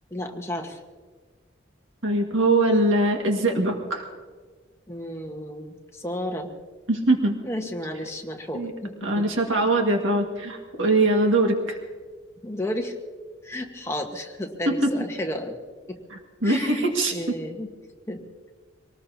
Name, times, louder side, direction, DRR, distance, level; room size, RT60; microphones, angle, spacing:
voice 1, 0.1-0.8 4.9-6.5 7.4-9.3 12.4-13.0 13.4-15.6 15.9-16.0 16.4-17.7 18.1-18.2, left 1 dB, 15° left, 3 dB, 1.3 m, -32 dB
voice 2, 2.0-4.0 6.9-7.4 8.5-8.7 9.0-11.8 14.7-14.9 16.1-17.4, right 2 dB, 90° right, 2 dB, 1.8 m, -22 dB
25.0 x 19.0 x 2.8 m, 1.5 s
head